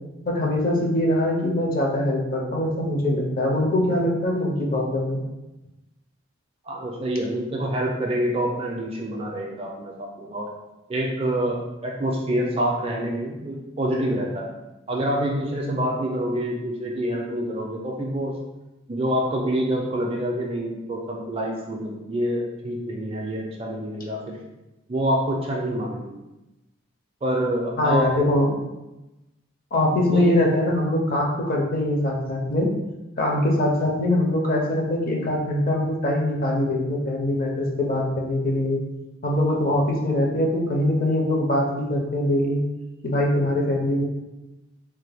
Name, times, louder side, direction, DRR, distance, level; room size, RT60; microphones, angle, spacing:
voice 1, 0.3-5.2 27.8-28.6 29.7-32.7 33.2-38.8 39.2-42.6 43.0-44.1, left 1 dB, 40° left, 0 dB, 0.5 m, -22 dB
voice 2, 6.7-10.5 10.9-14.5 14.9-18.3 18.9-24.4 24.9-26.1 27.2-28.1 30.1-30.4, right 1 dB, 25° right, -1 dB, 0.4 m, -26 dB
3.2 x 2.1 x 3.3 m, 0.99 s
head